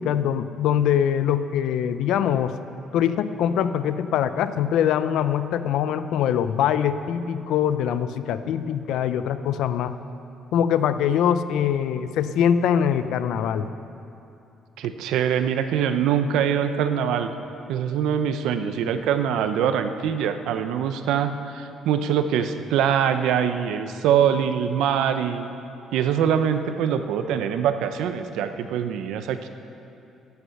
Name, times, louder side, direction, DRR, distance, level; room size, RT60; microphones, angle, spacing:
voice 1, 0.0-2.5 2.9-9.9 10.5-13.7, left 9 dB, 70° left, 12 dB, 0.5 m, -23 dB
voice 2, 14.8-17.3 17.7-25.5 25.9-29.5, right 8 dB, 80° right, 9 dB, 0.7 m, -23 dB
13.0 x 8.2 x 6.5 m, 2.7 s
cardioid pair, 175°, 0 cm